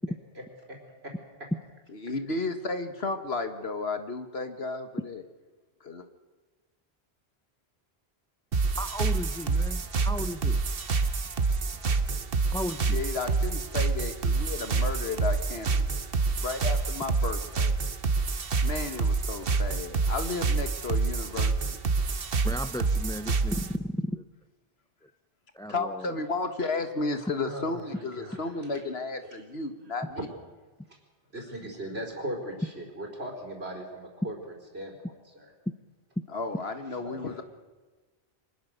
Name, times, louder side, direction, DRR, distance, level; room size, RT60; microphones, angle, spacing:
voice 1, 1.9-5.2 5.8-6.0 12.9-17.7 18.6-21.8 25.7-30.2 36.3-37.4, left 3 dB, 75° left, 8 dB, 1.9 m, -33 dB
sound 1, 8.5-23.8, right 4 dB, 65° right, 1.3 m, -27 dB
voice 2, 8.8-10.6 12.5-13.0 22.4-24.2 25.5-26.1, equal, 5° left, 11 dB, 0.4 m, -34 dB
voice 3, 27.4-28.5 30.9-31.0 31.3-34.4 34.7-34.9 35.4-35.5 37.0-37.2, right 1 dB, 80° right, 1 dB, 4.7 m, -38 dB
24.5 x 20.5 x 6.7 m, 1.3 s
omnidirectional pair, 1.1 m